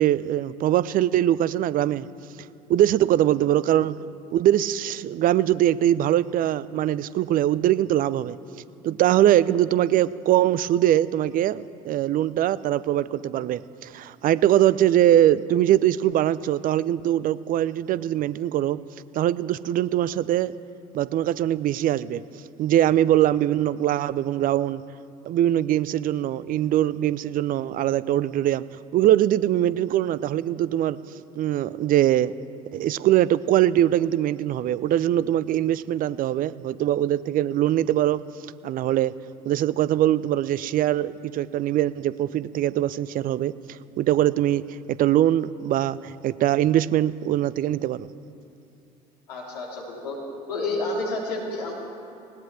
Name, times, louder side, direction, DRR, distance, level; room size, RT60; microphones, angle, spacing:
voice 1, 0.0-2.1 2.7-4.0 4.3-8.4 8.8-18.8 19.1-20.5 20.9-22.2 22.6-24.8 25.2-28.6 28.9-31.0 31.4-32.3 32.7-38.2 38.6-39.1 39.5-48.1, right 12 dB, 45° right, 18 dB, 0.5 m, -22 dB
voice 2, 49.3-50.2 50.5-51.7, left 2 dB, 80° left, -2 dB, 3.1 m, -29 dB
20.0 x 17.5 x 3.4 m, 2.7 s
hypercardioid pair, 65°, 20 cm